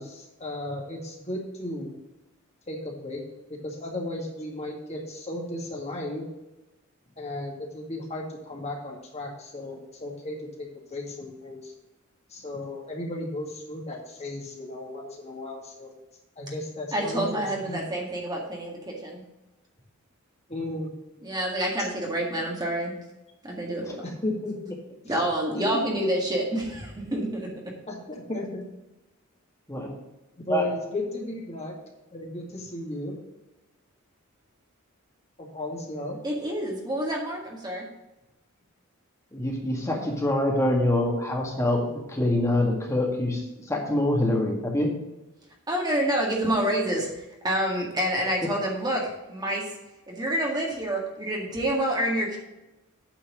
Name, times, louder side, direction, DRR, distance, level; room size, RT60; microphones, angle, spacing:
voice 1, 0.0-1.9 2.7-3.2 3.5-6.3 7.2-11.7 12.3-15.9 16.4-17.8 20.5-20.9 24.0-24.8 25.1-25.2 25.5-25.6 27.9-28.6 30.4-31.7 32.1-33.1 35.4-36.2, left 2 dB, 30° left, -1 dB, 2.1 m, -35 dB
voice 2, 16.9-19.2 21.2-22.9 23.4-24.0 25.0-27.7 36.2-37.9 45.7-49.8 50.1-52.4, right 1 dB, 20° right, -1 dB, 1.8 m, -28 dB
voice 3, 39.3-44.9, left 1 dB, 15° left, 0 dB, 1.9 m, -25 dB
9.1 x 4.7 x 7.3 m, 0.99 s
head